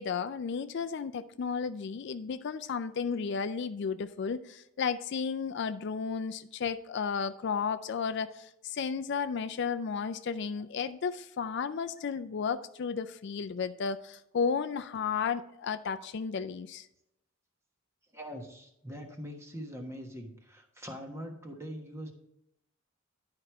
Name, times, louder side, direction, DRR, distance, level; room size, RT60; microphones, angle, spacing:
voice 1, 0.0-16.9, left 6 dB, 55° left, 12 dB, 0.4 m, -33 dB
voice 2, 18.1-22.1, equal, 15° right, 3 dB, 1.2 m, -42 dB
11.0 x 4.8 x 4.5 m, 0.81 s
head